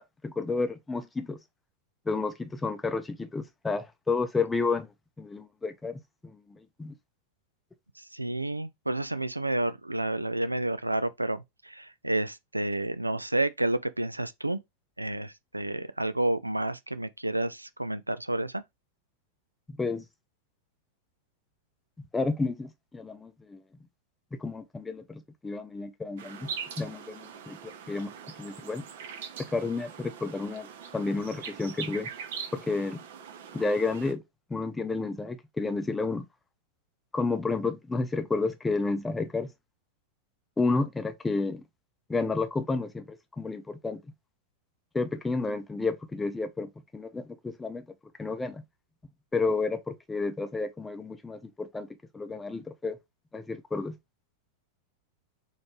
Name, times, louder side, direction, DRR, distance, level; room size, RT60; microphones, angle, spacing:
voice 1, 0.2-1.4 2.1-4.9 5.2-6.0 6.8-6.9 19.8-20.0 22.1-23.6 24.4-26.5 26.8-28.1 28.4-28.8 29.4-30.7 30.9-32.1 32.5-33.0 33.5-34.2 34.5-36.3 37.1-39.5 40.6-41.6 42.1-43.0 43.4-44.0 44.9-47.9 48.2-48.6 49.3-51.9 52.1-53.0 53.3-54.0, left 3 dB, 10° left, 0.6 m, -31 dB
voice 2, 8.1-14.6 15.0-18.6, right 1 dB, 85° right, 0.3 m, -30 dB
sound 1, 26.2-34.1, right 7 dB, 55° right, 0.9 m, -42 dB
4.2 x 3.0 x 3.0 m
figure-of-eight pair, 90°, 0 cm